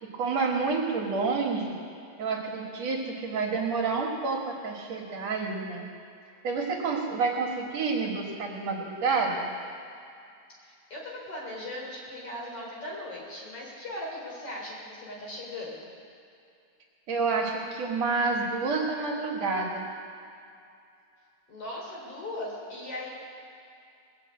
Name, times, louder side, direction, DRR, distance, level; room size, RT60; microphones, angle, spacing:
voice 1, 0.0-1.8 2.2-5.9 6.4-9.5 17.1-19.9, right 4 dB, 60° right, -2 dB, 2.6 m, -29 dB
voice 2, 10.6-15.9 21.5-23.1, left 1 dB, 50° left, -4 dB, 4.4 m, -38 dB
20.0 x 6.8 x 8.4 m, 2.5 s
omnidirectional pair, 3.5 m